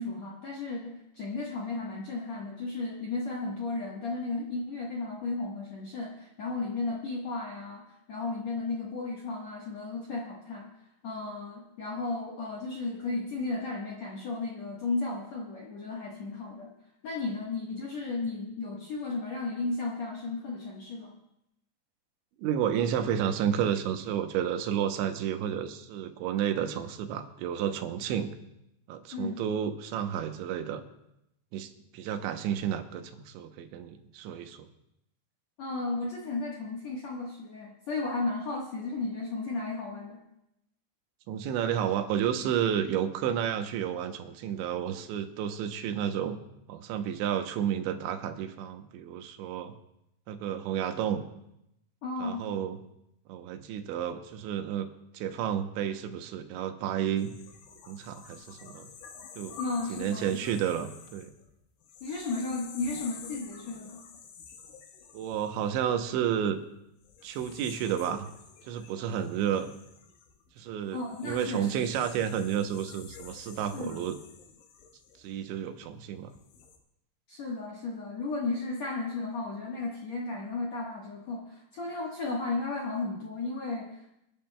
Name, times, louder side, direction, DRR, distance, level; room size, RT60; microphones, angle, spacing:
voice 1, 0.0-10.7 11.0-16.7 17.0-21.1 29.1-29.4 35.6-40.2 52.0-52.5 59.6-60.4 62.0-64.1 70.9-71.7 73.7-74.0 77.3-84.2, left 3 dB, 65° left, -3 dB, 1.7 m, -34 dB
voice 2, 22.4-28.3 28.9-30.8 31.5-34.7 41.3-46.4 46.7-49.7 50.3-51.3 52.2-52.8 53.3-54.9 55.1-57.3 57.9-58.9 59.4-59.6 59.9-61.3 65.1-66.6 67.2-68.3 68.6-69.7 70.6-71.0 71.2-74.2 75.2-76.3, right 9 dB, 85° right, 7 dB, 3.2 m, -31 dB
sound 1, 57.2-66.4 67.0-75.8 76.3-76.8, left 6 dB, 85° left, 3.8 m, -49 dB
29.0 x 10.5 x 2.3 m, 0.82 s
omnidirectional pair, 5.2 m